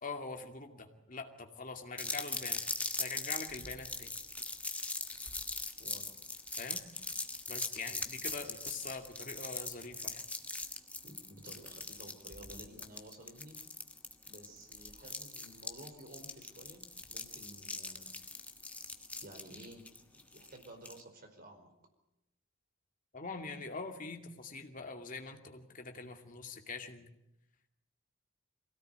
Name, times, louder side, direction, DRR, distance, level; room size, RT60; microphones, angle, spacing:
voice 1, 0.0-2.6 3.0-4.1 6.6-6.8 7.5-10.2 23.1-27.1, left 4 dB, 40° left, 4 dB, 2.4 m, -44 dB
sound 1, 2.0-21.0, left 2 dB, 5° left, 1.4 m, -41 dB
voice 2, 5.8-6.1 11.0-13.6 14.3-16.8 17.1-18.2 19.2-21.7, right 1 dB, 45° right, 4 dB, 4.7 m, -53 dB
24.0 x 17.5 x 9.1 m, 0.84 s
head